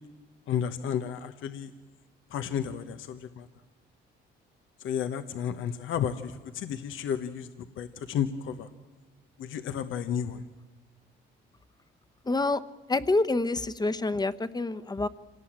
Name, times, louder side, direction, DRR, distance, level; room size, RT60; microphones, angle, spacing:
voice 1, 0.5-1.7 2.3-3.5 4.8-8.7 9.4-10.4, left 8 dB, 80° left, 9 dB, 1.1 m, -32 dB
voice 2, 12.2-12.6 12.9-15.1, left 2 dB, 20° left, 12 dB, 1.0 m, -27 dB
26.0 x 18.0 x 8.9 m, 1.4 s
cardioid pair, 90°, 20 cm